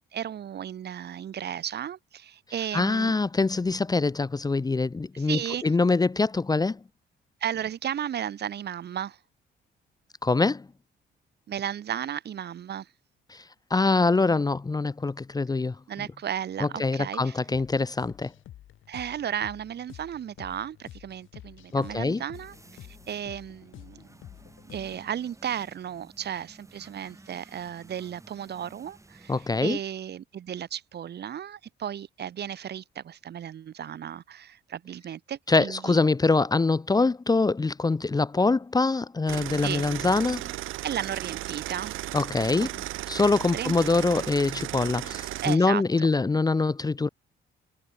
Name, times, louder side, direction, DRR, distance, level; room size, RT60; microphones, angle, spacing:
voice 1, 0.1-3.1 5.1-5.6 7.4-9.2 11.5-12.9 15.9-17.4 18.9-22.5 22.9-24.0 24.7-36.0 39.5-39.9 40.8-42.0 42.6-42.7 43.5-43.7 45.4-45.8, right 9 dB, 55° right, 1.3 m, -34 dB
voice 2, 2.7-6.8 10.2-10.7 13.3-13.4 13.7-15.8 16.6-18.3 21.7-22.2 29.3-29.8 35.5-40.5 42.1-42.7 43.1-47.1, left 3 dB, 20° left, 0.7 m, -24 dB
sound 1, 17.5-25.2, left 12 dB, 80° left, 8.0 m, -49 dB
sound 2, 22.3-29.6, right 2 dB, 15° right, 4.1 m, -54 dB
sound 3, 39.3-45.6, right 16 dB, 90° right, 1.5 m, -35 dB
cardioid pair, 90°, 20 cm